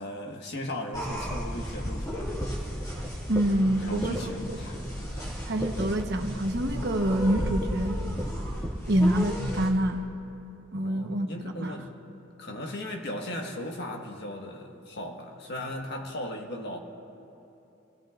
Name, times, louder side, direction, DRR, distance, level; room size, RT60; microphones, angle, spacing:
voice 1, 0.0-2.7 3.8-4.8 10.8-11.9 12.4-16.8, left 1 dB, 55° left, 2 dB, 1.5 m, -37 dB
sound 1, 0.9-9.7, equal, 15° left, 2.1 m, -33 dB
voice 2, 3.3-4.2 4.5-4.6 5.4-8.0 8.9-10.0 10.7-11.7, right 1 dB, 55° right, 4 dB, 1.1 m, -26 dB
28.0 x 17.0 x 2.5 m, 2.9 s
head